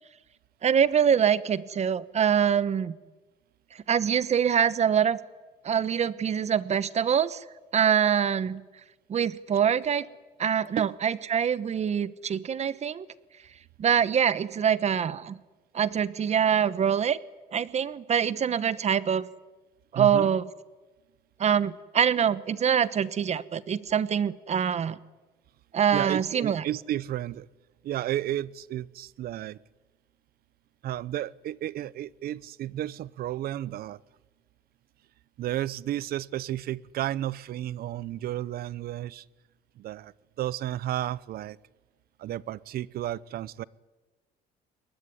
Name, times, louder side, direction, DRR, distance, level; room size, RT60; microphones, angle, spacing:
voice 1, 0.6-3.0 3.9-5.2 5.6-7.4 7.7-8.6 9.1-10.1 10.4-13.1 13.8-15.4 15.7-17.2 17.5-19.3 19.9-20.4 21.4-25.0 25.7-26.6, right 8 dB, 40° right, 17 dB, 1.1 m, -24 dB
voice 2, 19.9-20.3 25.9-27.5 27.8-29.6 30.8-34.0 35.4-39.2 39.8-41.6 42.2-43.6, right 13 dB, 65° right, 21 dB, 0.7 m, -32 dB
23.0 x 20.0 x 9.9 m, 1.2 s
cardioid pair, 110°, 17 cm